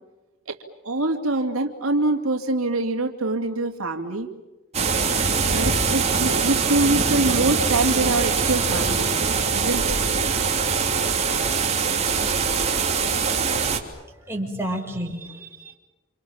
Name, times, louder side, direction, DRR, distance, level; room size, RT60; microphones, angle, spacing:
voice 1, 0.8-4.3 5.4-9.1 9.5-10.0, right 2 dB, 75° right, 3 dB, 2.7 m, -24 dB
sound 1, 4.7-13.8, right 5 dB, 30° right, 3.2 m, -22 dB
voice 2, 14.1-15.8, right 1 dB, 10° right, 0 dB, 5.8 m, -31 dB
30.0 x 27.5 x 7.3 m, 1.1 s
head